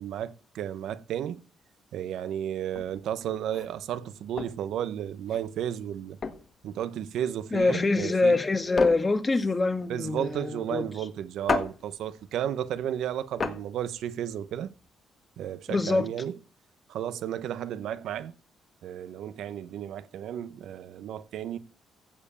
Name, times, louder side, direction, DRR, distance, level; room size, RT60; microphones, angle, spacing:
voice 1, 0.0-1.4 1.9-6.2 6.6-8.4 9.9-14.7 15.4-16.4 16.9-18.3 18.8-21.6, right 10 dB, 80° right, 0.9 m, -33 dB
sound 1, 2.7-14.9, left 5 dB, 45° left, 1.5 m, -36 dB
voice 2, 7.5-10.8 15.7-16.1, left 3 dB, 25° left, 1.4 m, -25 dB
15.5 x 5.2 x 7.0 m
cardioid pair, 90°, 0 cm